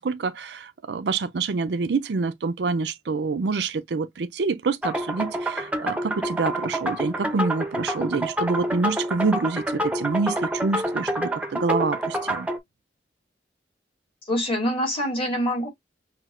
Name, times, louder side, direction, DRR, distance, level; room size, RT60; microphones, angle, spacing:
voice 1, 0.0-12.5, right 4 dB, 70° right, 0.5 m, -27 dB
sound 1, 4.8-12.6, right 1 dB, 10° right, 0.7 m, -28 dB
voice 2, 14.3-15.7, equal, 30° left, 2.0 m, -25 dB
5.8 x 2.7 x 2.4 m
head